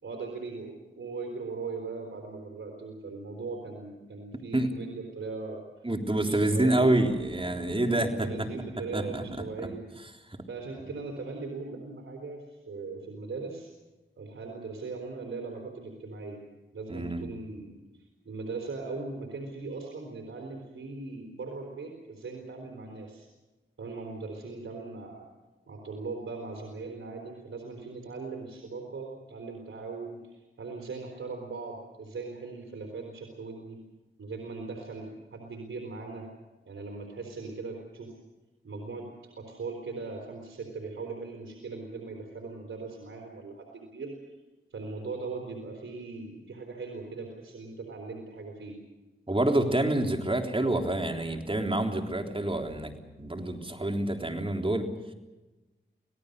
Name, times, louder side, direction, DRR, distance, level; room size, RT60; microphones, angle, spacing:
voice 1, 0.0-5.6 6.1-7.2 7.5-9.8 10.5-13.7 14.2-16.4 16.7-17.8 18.2-23.3 23.8-25.2 25.7-33.8 34.2-36.3 36.7-38.1 38.6-44.2 44.7-48.8, right 3 dB, 80° right, 1 dB, 4.1 m, -39 dB
voice 2, 5.8-8.3 8.9-9.2 16.9-17.2 49.3-54.9, right 1 dB, 25° right, 4 dB, 3.7 m, -27 dB
26.5 x 18.0 x 6.7 m, 1.1 s
cardioid pair, 40°, 20 cm